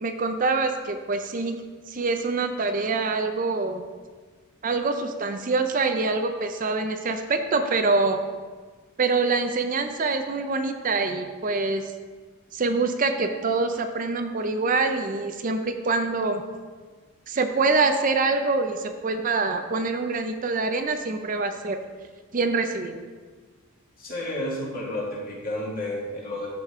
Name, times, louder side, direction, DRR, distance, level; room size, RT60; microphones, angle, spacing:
voice 1, 0.0-1.6 1.9-3.8 4.6-8.2 9.0-11.9 12.5-16.4 17.3-21.8 22.3-23.0, right 3 dB, 35° right, 6 dB, 0.5 m, -25 dB
voice 2, 24.0-26.5, left 1 dB, 40° left, -4 dB, 2.0 m, -31 dB
13.5 x 5.1 x 3.6 m, 1.5 s
head